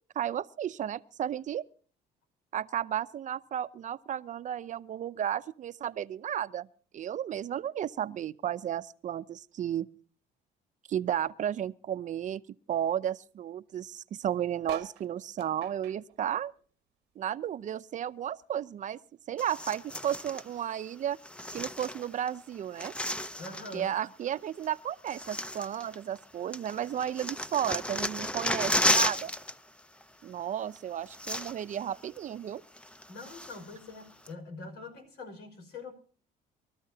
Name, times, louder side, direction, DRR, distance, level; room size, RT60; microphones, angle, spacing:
voice 1, 0.2-1.6 2.5-6.7 6.9-9.9 10.9-12.4 12.7-16.5 17.2-19.0 19.3-21.2 21.5-22.9 23.7-29.3 30.2-32.6, right 10 dB, 45° right, 0.6 m, -33 dB
sound 1, 14.6-17.4 17.7-19.2 19.7-19.8 20.0-20.1 20.3-20.7 21.5-21.6, right 12 dB, 90° right, 1.0 m, -47 dB
sound 2, 19.4-20.5 21.2-22.3 22.6-23.8 24.6-24.7 25.1-26.2 26.5-29.5 29.8-30.0 30.8-30.9 31.1-31.8 32.2-32.3 32.8-33.7 34.3-34.4, left 1 dB, 5° left, 0.7 m, -33 dB
voice 2, 23.4-23.9 33.1-35.9, left 3 dB, 80° left, 5.2 m, -44 dB
24.0 x 13.5 x 2.8 m
cardioid pair, 110°, 17 cm